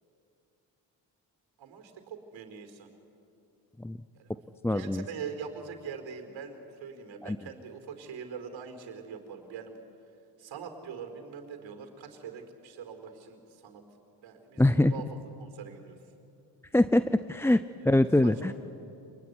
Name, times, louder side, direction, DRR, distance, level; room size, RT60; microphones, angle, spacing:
voice 1, 1.6-2.9 4.1-4.4 4.7-9.8 10.4-13.8 14.2-15.0 15.4-16.0 17.8-18.5, right 6 dB, 70° right, 6 dB, 4.5 m, -43 dB
voice 2, 4.6-5.0 7.2-7.4 14.6-14.9 16.7-18.5, left 1 dB, 5° left, 13 dB, 0.5 m, -24 dB
27.5 x 21.0 x 9.7 m, 2.7 s
supercardioid pair, 80°, 47 cm